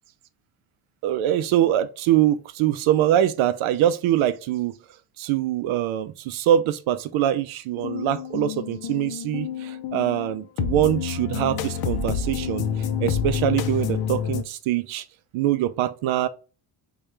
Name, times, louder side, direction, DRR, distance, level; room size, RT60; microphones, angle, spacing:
voice 1, 1.0-4.8 5.2-12.7 13.0-15.0 15.3-16.3, right 11 dB, 80° right, 0.6 m, -23 dB
sound 1, 7.8-14.4, left 7 dB, 55° left, 0.5 m, -28 dB
4.6 x 2.3 x 3.2 m
cardioid pair, 180°, 47 cm